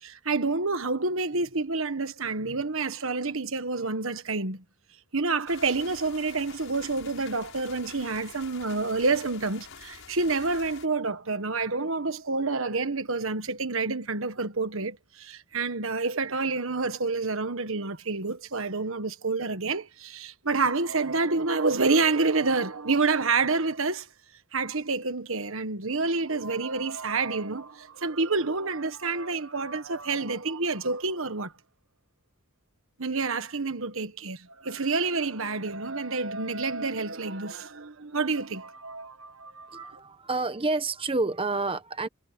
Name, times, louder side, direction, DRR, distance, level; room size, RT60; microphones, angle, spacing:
voice 1, 0.0-4.6 5.1-24.1 24.5-31.5 33.0-39.9, right 3 dB, 65° right, 1.5 m, -28 dB
sound 1, 5.5-10.9, left 6 dB, 65° left, 7.5 m, -47 dB
voice 2, 39.7-42.1, right 3 dB, 25° right, 0.9 m, -29 dB
head